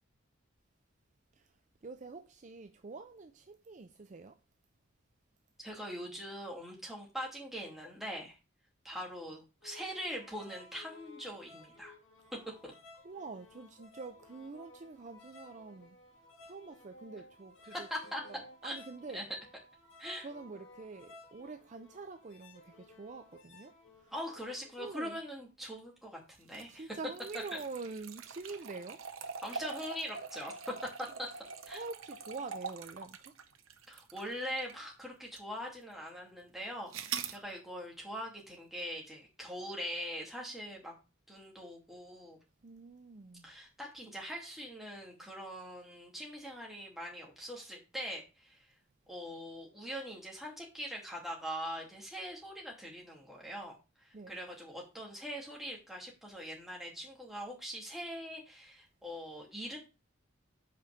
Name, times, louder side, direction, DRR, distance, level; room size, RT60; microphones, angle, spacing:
voice 1, 1.8-4.4 12.3-12.6 13.0-16.0 16.4-17.9 18.3-19.3 20.2-24.1 24.8-25.2 26.7-29.0 31.7-33.3 42.6-43.5 54.1-54.4, right 4 dB, 35° right, 0.5 m, -46 dB
voice 2, 5.6-8.4 8.8-11.9 12.6-12.7 17.7-18.2 18.6-18.7 19.1-19.2 20.0-20.3 24.1-26.9 27.5-27.6 29.4-31.3 31.7-31.8 33.9-40.9 41.3-42.4 43.4-48.7 49.1-59.8, equal, ahead, 2.6 m, -42 dB
sound 1, 9.6-25.0, left 2 dB, 70° left, 1.9 m, -56 dB
sound 2, 26.4-34.9 35.4-35.5 36.9-37.4, right 6 dB, 80° right, 0.9 m, -44 dB
5.8 x 4.9 x 6.5 m
head